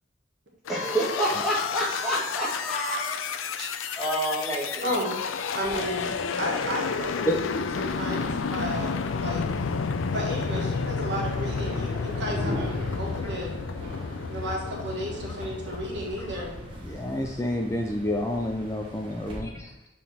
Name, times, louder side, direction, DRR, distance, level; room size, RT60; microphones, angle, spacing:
sound 1, 0.7-17.3, left 5 dB, 90° left, 0.4 m, -31 dB
voice 1, 0.7-3.6 4.0-4.9, right 1 dB, ahead, -8 dB, 1.9 m, -29 dB
voice 2, 4.8-5.2 5.5-7.3 7.8-9.7 10.1-13.5 14.3-16.5, equal, 60° right, -2 dB, 1.7 m, -33 dB
sound 2, 5.6-19.4, equal, 25° right, 1.3 m, -41 dB
voice 3, 16.8-19.7, left 1 dB, 15° left, 1 dB, 0.4 m, -29 dB
7.3 x 4.0 x 4.2 m, 1.0 s
head